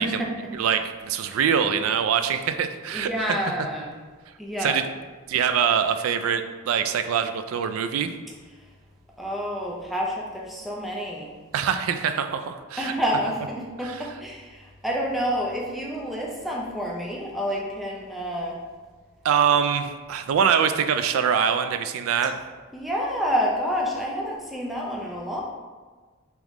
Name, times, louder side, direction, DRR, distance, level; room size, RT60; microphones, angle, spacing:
voice 1, 0.0-0.5 2.9-3.9 4.4-4.8 9.2-11.3 12.8-18.6 22.7-25.4, equal, ahead, -3 dB, 0.4 m, -28 dB
voice 2, 0.5-3.1 4.6-4.8 5.3-8.1 11.5-12.9 13.8-14.0 19.2-22.4, right 7 dB, 85° right, 9 dB, 0.3 m, -24 dB
3.6 x 3.0 x 3.5 m, 1.4 s
head